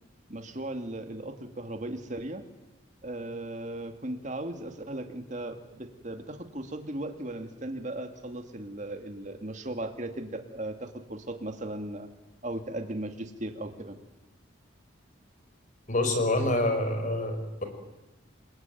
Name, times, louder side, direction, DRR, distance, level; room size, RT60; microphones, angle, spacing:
voice 1, 0.3-2.4 3.0-12.1 12.4-14.0, right 1 dB, 40° right, 6 dB, 2.2 m, -37 dB
voice 2, 15.9-17.6, left 1 dB, 40° left, 6 dB, 4.9 m, -27 dB
28.5 x 22.5 x 9.2 m, 1.0 s
head